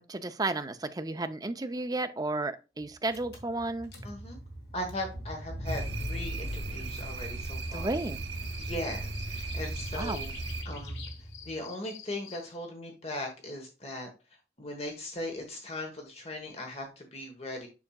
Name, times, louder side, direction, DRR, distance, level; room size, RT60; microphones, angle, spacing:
voice 1, 0.0-3.9 7.7-8.2 9.9-10.3, right 2 dB, 20° right, 0.5 m, -33 dB
Car / Engine, 2.8-2.9 3.1-11.5, equal, 65° left, 2.4 m, -38 dB
voice 2, 4.0-4.4 4.7-7.9 8.6-10.3 10.6-11.0 11.4-14.1 14.6-17.7, left 1 dB, 35° left, 1.2 m, -38 dB
sound 1, 5.7-10.6, right 4 dB, 70° right, 0.9 m, -39 dB
sound 2, 7.5-12.6, left 7 dB, 80° left, 1.5 m, -49 dB
7.2 x 6.3 x 2.3 m
head